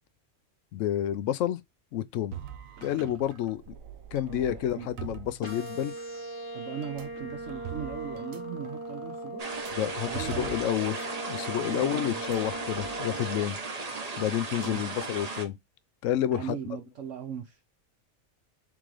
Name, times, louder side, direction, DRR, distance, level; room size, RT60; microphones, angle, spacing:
voice 1, 0.7-1.6 1.9-2.4 2.8-3.7 4.1-5.9 9.7-13.6 14.2-15.6 16.0-16.6, left 11 dB, 75° left, 0.9 m, -29 dB
sound 1, 2.3-6.2 6.8-11.1 11.3-11.5 12.1-13.0, right 10 dB, 90° right, 1.1 m, -44 dB
voice 2, 4.3-4.9 6.5-9.4 10.1-10.6 11.6-12.2 14.6-14.8 16.3-17.6, right 8 dB, 70° right, 1.0 m, -39 dB
sound 2, 5.4-13.4, right 1 dB, 25° left, 1.0 m, -39 dB
sound 3, 9.4-15.5, right 3 dB, 35° right, 0.8 m, -36 dB
3.8 x 3.7 x 3.1 m
omnidirectional pair, 1.4 m